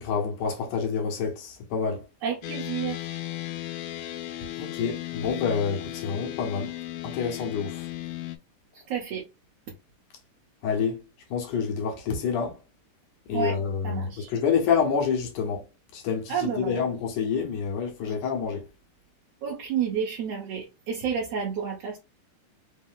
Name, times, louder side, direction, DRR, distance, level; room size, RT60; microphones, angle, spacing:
voice 1, 0.0-2.0 4.6-6.7 7.0-7.8 10.6-11.0 11.3-12.6 13.3-15.6 15.9-18.6, left 6 dB, 70° left, 2.2 m, -27 dB
voice 2, 2.2-3.0 8.9-9.2 13.3-13.6 13.8-14.3 16.3-16.8 19.4-22.0, right 7 dB, 70° right, 1.6 m, -30 dB
sound 1, 2.4-8.4, left 15 dB, 85° left, 2.4 m, -36 dB
5.4 x 2.1 x 3.5 m
omnidirectional pair, 4.1 m